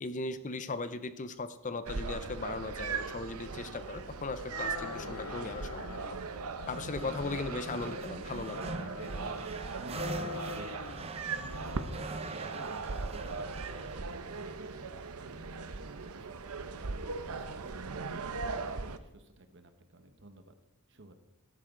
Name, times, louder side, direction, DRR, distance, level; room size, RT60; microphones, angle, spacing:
voice 1, 0.0-5.8 6.7-8.9, left 3 dB, 35° left, 12 dB, 0.6 m, -38 dB
sound 1, 1.9-19.0, right 4 dB, 85° right, 0.8 m, -39 dB
sound 2, 4.5-6.2 6.6-8.0 8.4-9.5 9.9-11.1 11.3-12.1, left 6 dB, 80° left, 0.5 m, -45 dB
sound 3, 6.7-15.3, right 3 dB, 25° right, 0.6 m, -43 dB
voice 2, 9.8-20.5 20.9-21.2, right 2 dB, 55° right, 8 dB, 1.2 m, -53 dB
13.5 x 11.0 x 3.8 m, 0.97 s
head